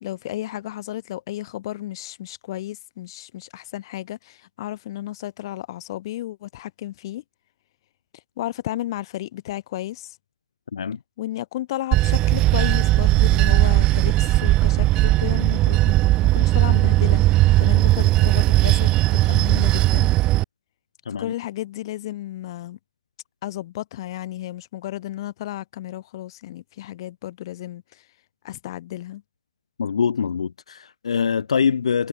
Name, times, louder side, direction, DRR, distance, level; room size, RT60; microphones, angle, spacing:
voice 1, 0.0-7.2 8.4-10.2 11.2-20.1 21.2-22.8 23.4-28.1 28.4-29.2, left 14 dB, 45° left, 2.5 m, -33 dB
Bell / Train, 11.9-20.4, right 17 dB, 25° right, 0.5 m, -18 dB
voice 2, 29.8-32.1, left 6 dB, 65° left, 3.1 m, -24 dB
figure-of-eight pair, 120°, 3 cm